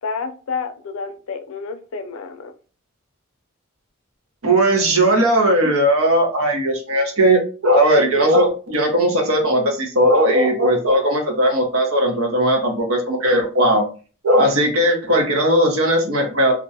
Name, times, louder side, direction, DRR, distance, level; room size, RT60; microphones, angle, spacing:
voice 1, 0.0-2.5, left 5 dB, 70° left, 0.4 m, -29 dB
voice 2, 4.4-13.8 14.2-16.5, right 1 dB, 80° right, 0.9 m, -17 dB
2.5 x 2.2 x 2.7 m
head